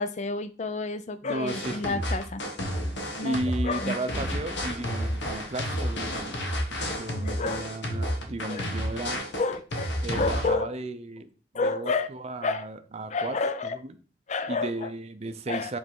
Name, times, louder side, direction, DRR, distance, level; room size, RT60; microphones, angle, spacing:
voice 1, 0.0-2.4 3.2-3.4 3.6-4.0 7.2-7.6 8.5-8.7 9.4-10.7 11.5-12.1 12.4-12.7 13.1-13.8 14.3-14.9 15.5-15.7, left 3 dB, 40° left, 11 dB, 0.5 m, -30 dB
voice 2, 1.2-2.0 3.2-6.1 6.7-9.2 10.0-11.3 11.6-13.9 14.5-15.8, right 2 dB, 35° right, 8 dB, 0.6 m, -34 dB
sound 1, 1.5-10.5, equal, 80° left, 1.3 m, -31 dB
5.2 x 3.4 x 5.3 m, 0.38 s
head